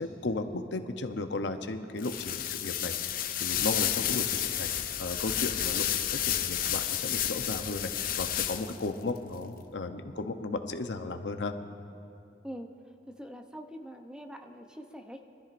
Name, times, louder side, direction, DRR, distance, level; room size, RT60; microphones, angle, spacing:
voice 1, 0.0-11.5, left 3 dB, 90° left, 7 dB, 0.7 m, -35 dB
sound 1, 2.0-8.9, left 11 dB, 55° left, 0.6 m, -31 dB
voice 2, 13.1-15.2, equal, 5° right, 5 dB, 0.6 m, -44 dB
24.0 x 13.5 x 2.6 m, 2.6 s
head